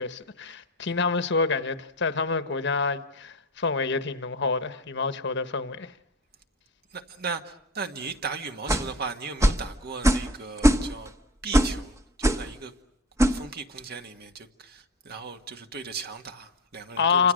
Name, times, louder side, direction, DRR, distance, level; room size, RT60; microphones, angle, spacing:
voice 1, 0.0-5.9 17.0-17.3, left 4 dB, 60° left, 1.3 m, -27 dB
voice 2, 6.9-11.1 11.4-12.7 13.3-17.3, right 5 dB, 55° right, 1.7 m, -37 dB
sound 1, 8.7-8.9 9.4-9.7 10.0-10.3 10.6-11.1 11.5-11.8 12.2-12.5 13.2-13.4, equal, 15° right, 1.1 m, -21 dB
29.5 x 26.0 x 6.5 m
head